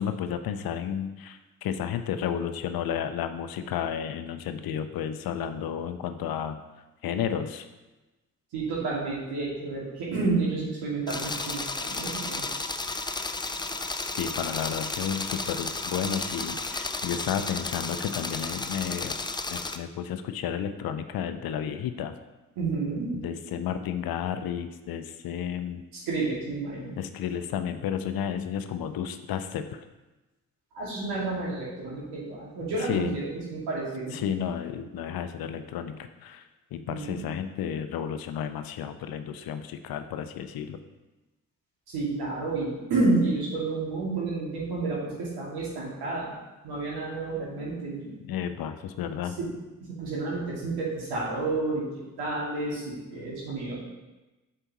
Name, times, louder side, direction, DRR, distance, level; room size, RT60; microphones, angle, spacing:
voice 1, 0.0-6.6 7.0-7.7 14.2-22.1 23.1-25.8 27.0-29.8 32.9-33.2 34.1-40.8 48.2-49.4, left 8 dB, 65° left, 9 dB, 0.7 m, -32 dB
voice 2, 8.5-12.4 22.6-23.1 25.9-27.0 30.7-34.2 36.9-37.1 41.9-46.3 46.6-48.1 49.4-49.5 49.8-51.8 52.2-53.7, right 3 dB, 75° right, -5 dB, 2.3 m, -30 dB
sound 1, 11.1-19.8, left 3 dB, 10° left, 0.5 m, -33 dB
7.9 x 5.6 x 3.0 m, 1.1 s
hypercardioid pair, 45°, 40 cm